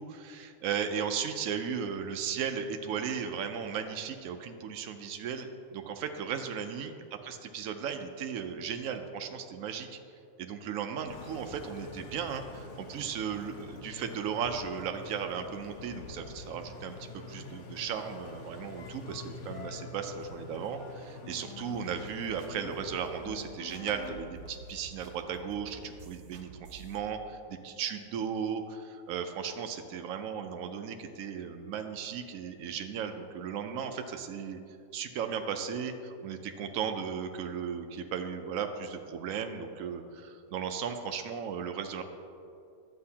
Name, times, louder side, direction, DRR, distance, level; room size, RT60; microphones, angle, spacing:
voice 1, 0.0-7.0 7.2-10.0 10.4-34.6 34.9-42.0, right 7 dB, 80° right, 6 dB, 0.7 m, -36 dB
Engine, 11.1-26.1, left 4 dB, 60° left, 0.8 m, -46 dB
sound 1, 21.7-27.0, right 4 dB, 60° right, 1.2 m, -51 dB
11.5 x 7.9 x 2.8 m, 2.5 s
omnidirectional pair, 2.0 m